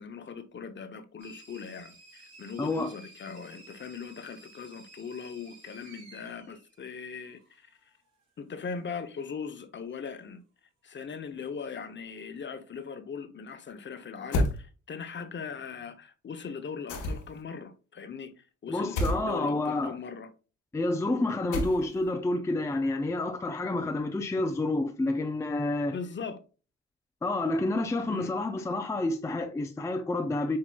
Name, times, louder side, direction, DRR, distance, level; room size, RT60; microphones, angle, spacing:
voice 1, 0.0-7.7 8.4-10.4 10.8-20.3 25.9-26.4 28.1-28.3, left 5 dB, 40° left, 0.7 m, -40 dB
sound 1, 1.2-7.6, right 3 dB, 60° right, 2.5 m, -54 dB
voice 2, 2.6-2.9 18.7-20.0 20.7-26.0 27.2-30.6, left 2 dB, 10° left, 0.4 m, -29 dB
sound 2, 14.3-14.6 16.9-17.4 19.0-19.2 21.5-22.1, left 1 dB, 80° left, 1.4 m, -28 dB
7.4 x 2.9 x 2.3 m
cardioid pair, 90°, 30 cm